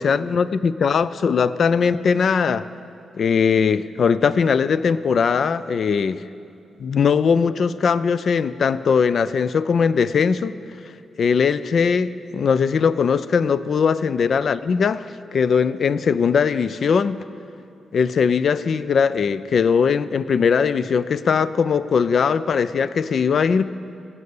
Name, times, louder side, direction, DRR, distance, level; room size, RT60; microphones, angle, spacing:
voice 1, 0.0-2.7 3.2-6.2 6.8-10.6 11.2-17.3 17.9-23.6, left 6 dB, 60° left, 15 dB, 0.4 m, -20 dB
16.0 x 5.5 x 8.3 m, 2.6 s
cardioid pair, 80°, 0 cm